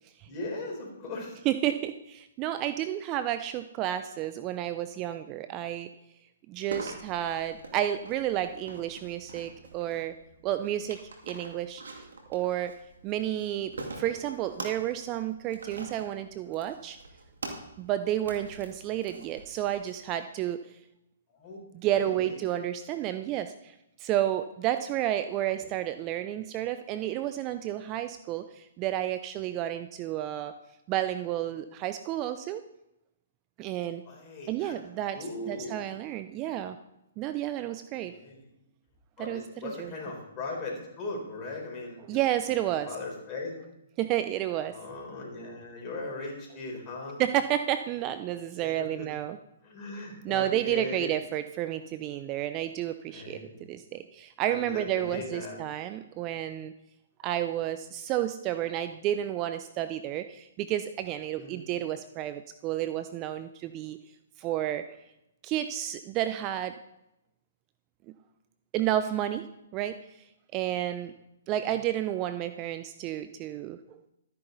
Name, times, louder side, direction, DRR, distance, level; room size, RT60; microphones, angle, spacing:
voice 1, 0.2-1.4 21.3-21.6 21.8-22.4 34.0-34.8 35.1-35.8 38.1-38.4 39.2-42.2 42.9-43.5 44.7-47.2 48.8-49.1 49.6-51.1 53.1-53.6 54.5-55.6 61.4-61.6 70.6-70.7 71.0-71.1, left 2 dB, 25° left, -2 dB, 4.3 m, -38 dB
voice 2, 1.5-5.9 6.5-10.1 10.4-11.0 11.3-12.7 13.0-17.0 17.8-20.8 21.7-30.5 30.9-32.6 33.6-34.0 34.5-35.2 35.5-36.8 37.2-38.1 39.2-39.9 42.1-42.9 44.0-44.7 47.2-49.4 50.2-53.4 53.7-56.7 57.2-64.0 64.4-64.8 65.4-66.7 68.1-68.2 68.7-69.5 69.7-70.2 70.5-71.1 71.5-74.0, right 12 dB, 30° right, 10 dB, 0.4 m, -31 dB
sound 1, 6.7-19.9, right 2 dB, 80° right, 2.3 m, -44 dB
12.5 x 9.8 x 4.0 m, 0.87 s
hypercardioid pair, 140°, 0 cm